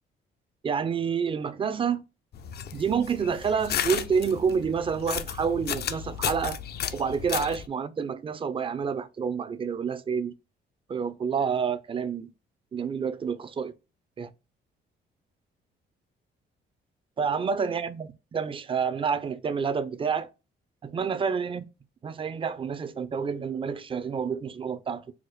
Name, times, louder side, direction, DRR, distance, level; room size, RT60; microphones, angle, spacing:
voice 1, 0.6-2.0 2.7-6.6 6.9-10.3 10.9-12.3 12.7-13.7 14.2-14.3 17.2-20.3 20.8-21.6 22.0-25.0, right 6 dB, 25° right, 0.4 m, -28 dB
sound 1, 2.3-7.7, left 9 dB, 55° left, 0.4 m, -34 dB
4.7 x 2.0 x 3.1 m
cardioid pair, 90°, 20 cm